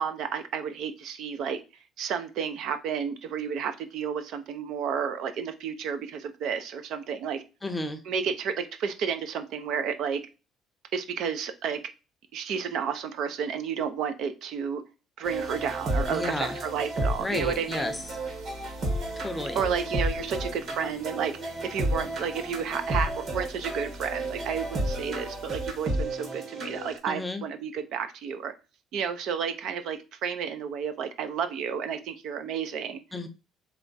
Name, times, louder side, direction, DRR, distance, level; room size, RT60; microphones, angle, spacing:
voice 1, 0.0-1.6 2.0-7.4 8.1-10.2 10.9-11.8 12.3-14.8 15.2-18.0 19.5-28.5 28.9-33.0, right 7 dB, 65° right, 0.6 m, -31 dB
voice 2, 7.6-8.0 16.1-16.6 17.2-18.0 19.2-19.7 27.1-27.4 33.1-33.3, left 2 dB, 10° left, 0.6 m, -32 dB
sound 1, 15.2-27.0, right 1 dB, 50° right, 1.6 m, -32 dB
3.5 x 3.4 x 4.0 m
cardioid pair, 145°, 0 cm